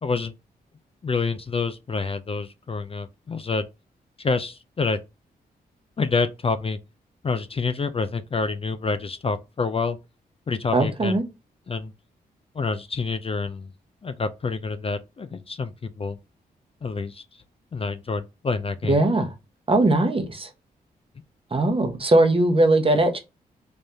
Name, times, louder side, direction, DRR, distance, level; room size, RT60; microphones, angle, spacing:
voice 1, 0.0-0.3 1.0-3.7 4.2-5.0 6.0-6.8 7.2-10.0 10.5-11.2 11.7-11.9 12.5-13.7 14.0-16.2 16.8-17.4 17.7-19.0, left 4 dB, 35° left, 0.4 m, -27 dB
voice 2, 10.7-11.2 18.9-19.3 19.7-20.5 21.5-23.2, right 2 dB, 35° right, 0.9 m, -20 dB
3.5 x 2.6 x 3.4 m
cardioid pair, 55°, 17 cm